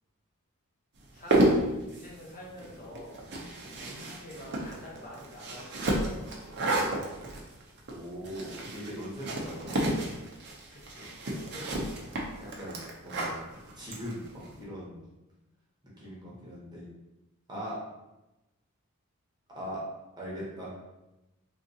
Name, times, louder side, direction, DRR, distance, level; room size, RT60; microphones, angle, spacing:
sound 1, 1.0-14.5, right 1 dB, 50° right, 0.6 m, -32 dB
voice 1, 1.1-3.2 3.8-6.8 10.7-12.0, left 1 dB, 40° left, -5 dB, 0.8 m, -46 dB
voice 2, 7.9-9.9 12.4-13.4 13.7-15.1 16.0-16.9 17.5-17.8 19.5-19.8 20.2-20.7, equal, 20° right, -6 dB, 0.9 m, -40 dB
3.6 x 2.5 x 2.7 m, 0.98 s
head